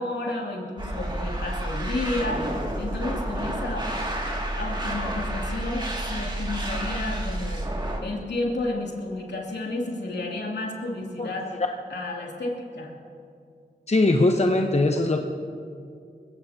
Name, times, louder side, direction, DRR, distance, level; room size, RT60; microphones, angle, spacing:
voice 1, 0.0-3.9 4.6-7.6 8.0-11.5 11.9-12.9, left 2 dB, 70° left, -2 dB, 2.8 m, -31 dB
sound 1, 0.8-8.0, right 1 dB, 25° right, 2.4 m, -30 dB
voice 2, 13.9-15.2, left 2 dB, 35° left, 3 dB, 1.0 m, -20 dB
21.0 x 16.0 x 2.9 m, 2.4 s
cardioid pair, 45°, 18 cm